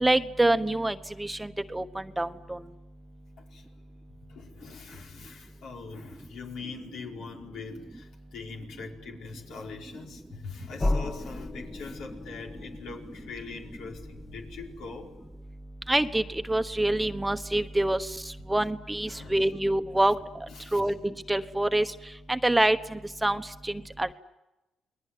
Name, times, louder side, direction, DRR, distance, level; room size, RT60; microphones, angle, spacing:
voice 1, 0.0-2.6 15.9-18.1 18.5-20.2 20.7-20.9 21.3-21.8 22.3-24.1, right 1 dB, 10° right, 9 dB, 1.1 m, -26 dB
voice 2, 4.1-15.2 19.0-19.4 19.9-20.0 20.5-20.9, left 4 dB, 85° left, 0 dB, 5.0 m, -43 dB
sound 1, 10.8-15.5, left 2 dB, 20° left, 1.3 m, -35 dB
29.5 x 21.0 x 9.3 m, 0.99 s
cardioid pair, 90°, 0 cm